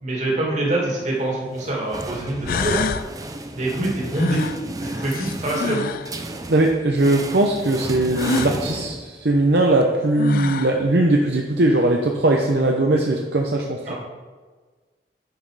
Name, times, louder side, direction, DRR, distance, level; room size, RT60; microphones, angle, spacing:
voice 1, 0.0-2.8 3.5-4.4 4.8-5.8 13.9-14.0, right 2 dB, 40° right, -3 dB, 2.4 m, -25 dB
sound 1, 1.0-1.1 2.0-2.1 2.4-3.1 4.1-6.1 8.1-8.6 9.8-9.9 10.2-10.8, left 5 dB, 50° left, 0.3 m, -27 dB
sound 2, 1.5-9.5, right 2 dB, 20° right, 0.5 m, -33 dB
voice 2, 6.5-13.9, right 2 dB, 60° right, 1 dB, 0.8 m, -19 dB
9.3 x 5.9 x 4.9 m, 1.4 s
head